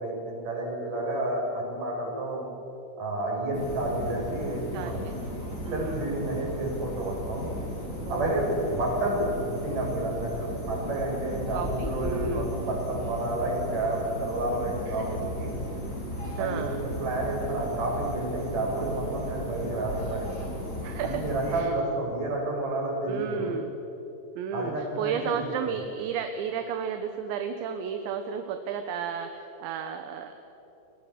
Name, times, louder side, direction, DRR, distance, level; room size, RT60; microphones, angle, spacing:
voice 1, 0.0-2.5 3.0-5.0 5.7-7.5 8.1-15.5 16.4-20.6 21.0-23.5 24.5-25.8, right 1 dB, 45° right, -1 dB, 8.0 m, -30 dB
sound 1, 3.5-21.6, equal, 15° left, 6.1 m, -35 dB
voice 2, 4.7-6.1 8.1-8.8 11.5-12.5 14.9-15.2 16.4-16.8 20.8-21.2 21.5-21.7 23.1-23.7 24.4-30.5, right 7 dB, 75° right, 7 dB, 3.4 m, -33 dB
30.0 x 25.0 x 7.4 m, 3.0 s
omnidirectional pair, 5.6 m